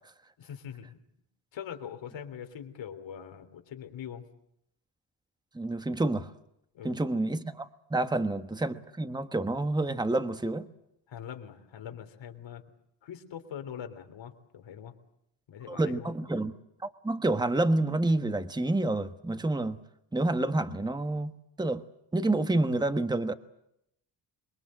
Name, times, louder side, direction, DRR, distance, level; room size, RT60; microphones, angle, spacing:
voice 1, 0.4-1.0 1.5-4.2 6.7-7.0 11.1-12.6 13.0-14.9 15.5-16.1, left 8 dB, 85° left, 3.5 m, -42 dB
voice 2, 5.5-6.3 6.8-10.7 15.7-16.5 17.0-19.8 20.1-21.3 21.6-21.8 22.1-23.3, right 2 dB, 10° right, 1.3 m, -28 dB
27.5 x 22.5 x 7.8 m
cardioid pair, 120°, 43 cm